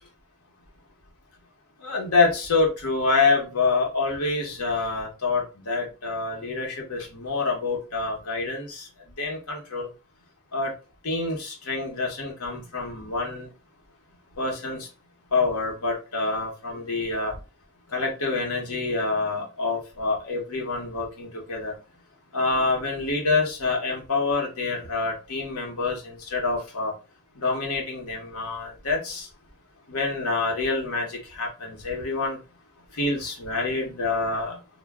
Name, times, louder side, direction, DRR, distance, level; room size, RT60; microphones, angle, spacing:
voice 1, 1.8-8.9 9.2-9.9 10.5-10.7 11.0-13.5 14.4-14.9 15.3-17.4 17.9-21.8 22.3-26.9 27.3-29.3 29.9-32.4 32.9-34.6, left 3 dB, 85° left, -1 dB, 1.0 m, -27 dB
2.2 x 2.2 x 3.4 m, 0.31 s
head